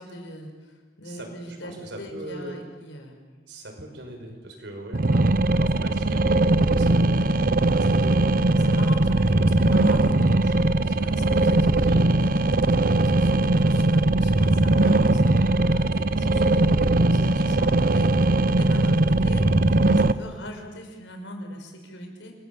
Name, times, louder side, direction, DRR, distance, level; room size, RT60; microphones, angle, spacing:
voice 1, 0.0-3.2 4.9-5.2 8.5-12.6 12.9-22.3, equal, 80° left, 3 dB, 5.5 m, -40 dB
voice 2, 1.0-2.6 3.5-7.3 7.7-8.2 9.0-9.5 11.8-12.1 17.0-17.6, right 1 dB, 65° right, 3 dB, 5.9 m, -41 dB
sound 1, 4.9-20.1, right 2 dB, 50° right, 0.8 m, -20 dB
29.5 x 21.5 x 7.5 m, 1.4 s
head